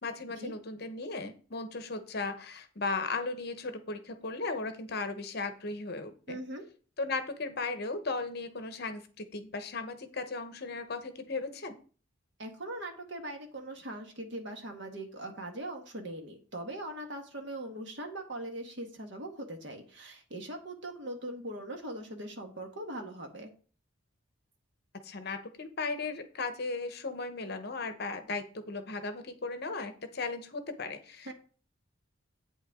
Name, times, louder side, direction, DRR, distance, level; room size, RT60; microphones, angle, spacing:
voice 1, 0.0-6.4 7.0-11.8 25.0-31.3, left 3 dB, 50° left, 9 dB, 0.9 m, -36 dB
voice 2, 6.3-6.6 12.4-23.5 31.2-31.3, right 1 dB, 60° right, 4 dB, 1.6 m, -41 dB
8.6 x 7.9 x 3.6 m, 0.40 s
head